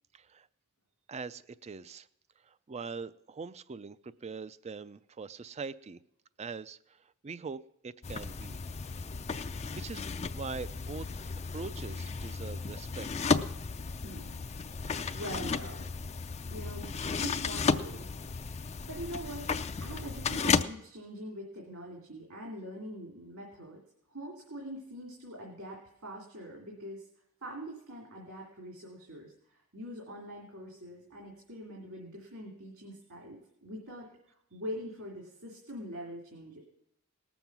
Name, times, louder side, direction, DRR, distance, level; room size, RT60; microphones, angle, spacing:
voice 1, 0.1-0.5 1.1-2.1 2.4-6.0 6.4-8.6 9.7-10.0 10.3-11.1 11.5-13.3, right 4 dB, 30° right, 16 dB, 0.4 m, -42 dB
sound 1, 8.0-20.6, left 5 dB, 30° left, 0.5 m, -34 dB
voice 2, 14.0-14.4 15.1-15.9 16.5-18.0 18.8-19.5 19.8-23.8 24.1-27.0 27.4-34.1 34.5-36.6, equal, 70° right, -1 dB, 2.7 m, -43 dB
18.5 x 7.1 x 6.0 m, 0.76 s
head